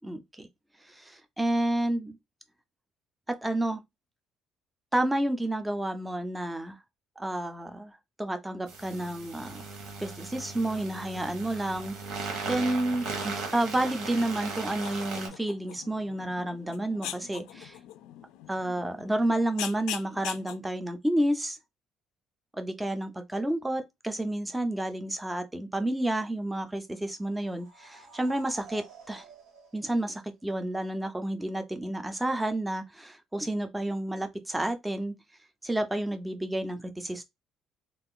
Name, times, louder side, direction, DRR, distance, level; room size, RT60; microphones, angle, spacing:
voice 1, 0.0-0.5 0.9-2.2 3.3-3.8 4.9-6.8 7.2-7.9 8.2-9.7 10.0-17.8 18.5-21.6 22.6-29.3 29.7-35.1 35.6-37.2, right 1 dB, 5° right, 0.4 m, -30 dB
sound 1, 8.7-15.3, right 4 dB, 65° right, 1.0 m, -37 dB
sound 2, 12.3-20.6, left 12 dB, 85° left, 0.3 m, -43 dB
sound 3, 27.1-30.6, right 5 dB, 80° right, 1.2 m, -51 dB
2.4 x 2.4 x 3.6 m
cardioid pair, 150°, 0 cm